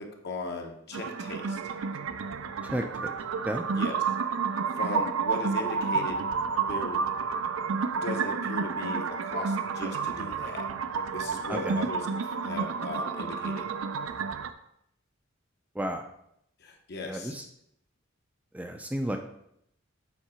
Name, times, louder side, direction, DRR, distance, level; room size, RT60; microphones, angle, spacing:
voice 1, 0.0-1.6 3.7-4.0 4.8-6.2 6.7-7.0 8.0-10.7 11.1-13.7 16.6-17.3, left 2 dB, 55° left, 3 dB, 0.9 m, -37 dB
sound 1, 0.9-14.5, right 5 dB, 80° right, 0.4 m, -30 dB
voice 2, 2.6-3.1 3.5-3.6 11.5-11.8 15.7-16.0 17.0-17.4 18.5-19.2, right 1 dB, 5° right, 4 dB, 0.4 m, -32 dB
7.3 x 3.7 x 4.3 m, 0.73 s
head